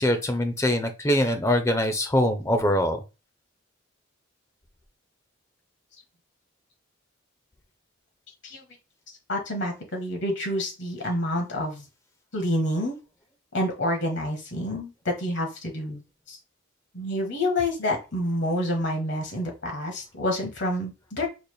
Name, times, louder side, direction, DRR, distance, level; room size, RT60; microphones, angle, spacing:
voice 1, 0.0-3.0, left 1 dB, 15° left, 6 dB, 0.5 m, -23 dB
voice 2, 9.3-11.9 12.3-12.9 13.5-16.4 16.9-21.3, left 1 dB, 60° left, 3 dB, 1.3 m, -28 dB
4.1 x 3.3 x 2.3 m, 0.28 s
head